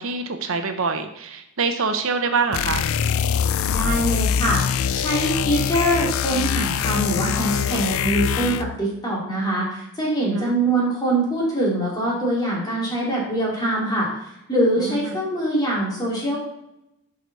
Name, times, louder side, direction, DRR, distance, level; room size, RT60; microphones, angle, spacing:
voice 1, 0.0-2.9 10.3-10.6 14.8-15.2, right 4 dB, 65° right, 7 dB, 0.8 m, -25 dB
sound 1, 2.5-8.8, left 8 dB, 70° left, 0.4 m, -23 dB
voice 2, 3.6-4.6 4.9-16.4, right 1 dB, 20° left, -4 dB, 2.7 m, -23 dB
10.5 x 5.0 x 4.0 m, 0.84 s
head